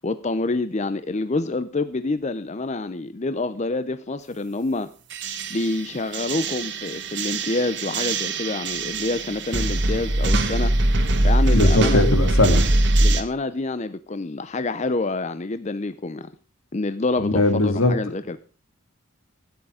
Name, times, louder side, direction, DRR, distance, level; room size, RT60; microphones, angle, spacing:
voice 1, 0.0-4.9 5.5-10.8 11.2-12.1 13.0-16.3 16.7-18.4, left 2 dB, 35° left, 13 dB, 0.5 m, -27 dB
sound 1, 5.1-13.2, right 1 dB, 60° right, 1.4 m, -22 dB
voice 2, 11.5-12.7 17.2-17.9, left 1 dB, 85° left, 8 dB, 2.3 m, -19 dB
12.5 x 9.7 x 4.9 m, 0.37 s
head